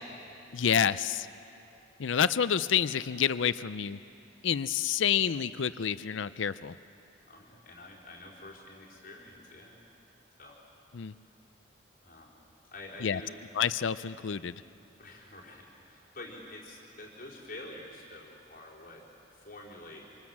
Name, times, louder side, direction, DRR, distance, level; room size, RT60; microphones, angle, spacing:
voice 1, 0.5-1.3 2.0-4.0 4.4-6.7 10.9-11.1 13.0-13.2 13.6-14.6, left 8 dB, 75° left, 15 dB, 0.5 m, -28 dB
voice 2, 7.3-9.8 10.4-10.6 11.2-11.4 12.0-12.3 12.7-13.4 15.0-19.0 19.3-20.0, left 2 dB, 45° left, -4 dB, 4.4 m, -47 dB
25.5 x 25.5 x 7.3 m, 2.9 s
head